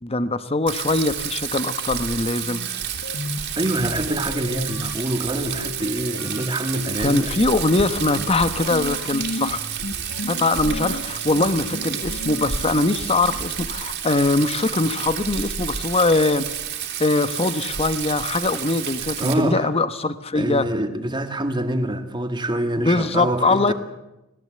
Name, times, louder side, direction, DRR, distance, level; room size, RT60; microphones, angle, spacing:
voice 1, 0.0-2.6 7.0-9.6 10.3-16.5 17.0-20.7 22.8-23.7, left 2 dB, 30° left, 1.1 m, -22 dB
Rain, 0.7-19.3, right 8 dB, 55° right, 3.2 m, -30 dB
sound 1, 2.1-2.2 2.4-13.6, left 2 dB, 85° left, 1.8 m, -35 dB
voice 2, 3.3-7.3 8.1-8.3 19.2-19.6 20.4-23.7, right 1 dB, 20° right, 2.0 m, -25 dB
26.0 x 17.5 x 7.8 m
head